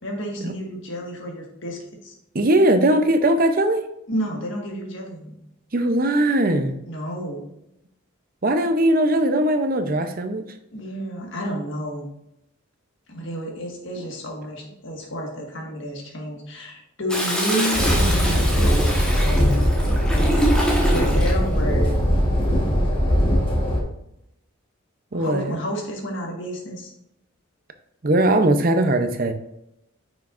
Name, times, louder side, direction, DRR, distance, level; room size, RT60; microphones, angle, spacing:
voice 1, 0.0-2.1 4.1-5.4 6.9-7.4 10.7-12.1 13.1-19.7 20.9-22.1 22.5-22.7 25.1-26.9, equal, 55° left, 0 dB, 1.6 m, -30 dB
voice 2, 2.3-3.8 5.7-6.8 8.4-10.4 25.1-25.6 28.0-29.3, right 1 dB, 40° right, 8 dB, 0.6 m, -19 dB
Toilet flush, 17.1-21.4 22.8-23.3, equal, 5° left, 1.3 m, -26 dB
sound 1, 17.7-23.8, equal, 25° left, 1.3 m, -20 dB
9.1 x 5.9 x 2.5 m, 0.82 s
head